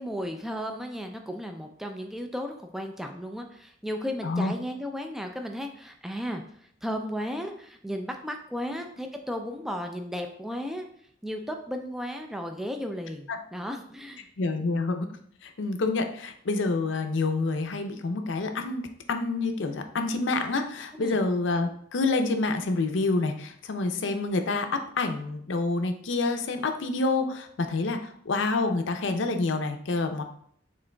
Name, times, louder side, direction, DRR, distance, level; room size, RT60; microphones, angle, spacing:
voice 1, 0.0-6.4 6.8-10.9 11.2-14.3 20.9-21.2, equal, ahead, 4 dB, 0.3 m, -34 dB
voice 2, 4.2-4.5 13.3-13.4 14.4-15.1 15.4-30.2, left 3 dB, 70° left, 6 dB, 0.5 m, -28 dB
6.0 x 3.8 x 2.2 m, 0.65 s
head